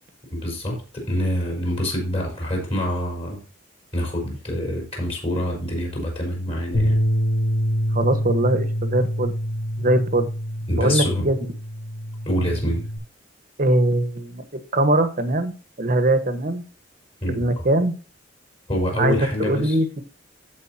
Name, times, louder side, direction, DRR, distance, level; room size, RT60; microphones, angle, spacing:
voice 1, 0.3-3.4 3.9-7.0 10.7-11.3 12.2-12.9 17.2-17.6 18.7-19.8, left 1 dB, 30° left, 0 dB, 4.5 m, -26 dB
Bass guitar, 6.7-13.0, equal, 60° left, 4.5 m, -25 dB
voice 2, 7.9-9.3 9.8-10.3 10.7-11.4 13.6-14.4 14.7-15.5 15.8-16.6 17.3-17.9 19.0-20.0, right 1 dB, 45° right, 9 dB, 1.3 m, -21 dB
15.5 x 5.2 x 2.8 m, 0.37 s
head